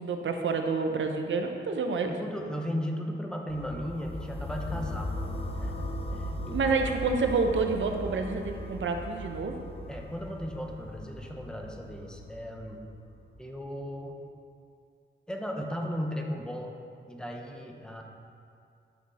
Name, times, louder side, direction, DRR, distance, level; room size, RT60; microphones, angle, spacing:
voice 1, 0.0-2.1 6.5-9.6, right 4 dB, 70° right, 5 dB, 0.8 m, -28 dB
voice 2, 2.1-5.1 5.6-6.7 9.9-12.8 13.4-14.2 15.3-16.7 17.1-18.0, equal, 5° left, 1 dB, 1.0 m, -36 dB
sound 1, 3.5-13.4, left 1 dB, 30° left, 1.0 m, -38 dB
11.0 x 6.1 x 4.2 m, 2.4 s
wide cardioid pair, 100°, 20 cm